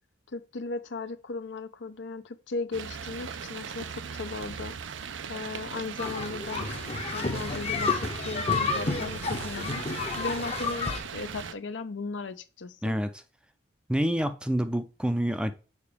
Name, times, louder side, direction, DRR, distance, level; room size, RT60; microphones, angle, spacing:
voice 1, 0.3-4.7 5.3-6.7 7.1-9.8 10.2-12.9, left 3 dB, 70° left, 0.7 m, -37 dB
sound 1, 2.7-11.5, right 6 dB, 75° right, 0.5 m, -38 dB
sound 2, 6.0-11.0, left 4 dB, 30° left, 0.8 m, -31 dB
voice 2, 13.9-15.5, equal, 5° right, 0.5 m, -27 dB
6.6 x 4.7 x 3.5 m
head